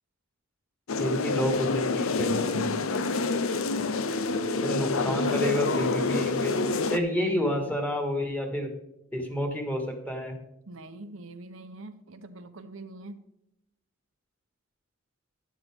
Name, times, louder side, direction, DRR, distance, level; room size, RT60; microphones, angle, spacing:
sound 1, 0.9-7.0, left 3 dB, 85° left, 0.7 m, -27 dB
voice 1, 1.0-2.8 4.5-8.7 9.1-10.4, equal, 10° left, 3 dB, 1.9 m, -30 dB
voice 2, 2.9-3.2 10.7-13.2, right 2 dB, 70° right, 9 dB, 0.9 m, -44 dB
12.0 x 10.5 x 3.6 m, 0.82 s
head